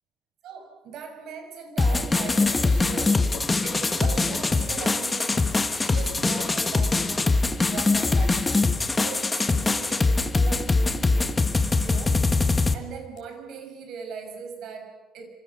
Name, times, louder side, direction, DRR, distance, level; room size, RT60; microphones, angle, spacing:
voice 1, 0.4-3.3 3.6-11.4 11.8-12.2 12.7-15.3, right 5 dB, 65° right, 6.7 m, -39 dB
sound 1, 1.8-12.7, left 3 dB, 15° left, 1.5 m, -23 dB
sound 2, 2.4-7.5 8.2-8.4 9.1-9.2 9.4-9.6 10.5-10.7 11.2-11.3 11.8-11.9 12.4-12.6 13.0-13.2, left 6 dB, 60° left, 6.1 m, -44 dB
27.0 x 27.0 x 6.9 m
cardioid pair, 140°, 0 cm